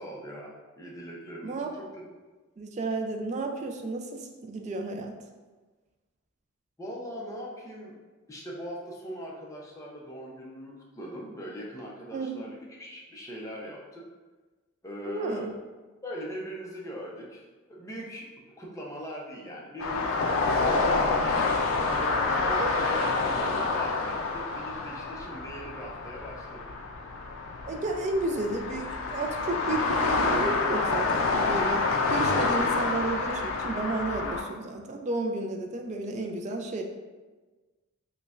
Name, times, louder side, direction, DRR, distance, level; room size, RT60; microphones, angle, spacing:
voice 1, 0.0-2.0 6.8-8.0 8.3-14.0 14.8-15.5 16.0-17.4 17.7-18.3 18.6-21.5 21.8-26.7, equal, 15° left, -3 dB, 0.5 m, -40 dB
voice 2, 1.4-1.7 2.6-5.2 12.1-12.5 15.1-15.5 22.5-22.7 27.7-36.8, right 2 dB, 35° right, 4 dB, 0.3 m, -32 dB
sound 1, 19.8-34.4, left 3 dB, 70° left, 0.4 m, -28 dB
5.1 x 2.2 x 2.4 m, 1.3 s
head